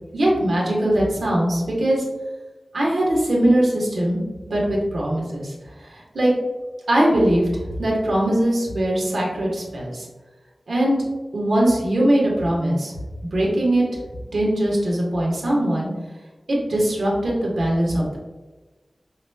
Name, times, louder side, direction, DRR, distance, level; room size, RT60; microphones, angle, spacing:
voice 1, 0.1-2.0 2.7-4.2 4.5-5.5 5.8-6.3 6.9-10.1 10.7-11.0 11.3-13.0 13.3-13.8 14.3-15.9 16.5-18.2, right 1 dB, 85° right, -3 dB, 1.1 m, -21 dB
5.7 x 3.0 x 2.2 m, 1.2 s
wide cardioid pair, 80°, 0 cm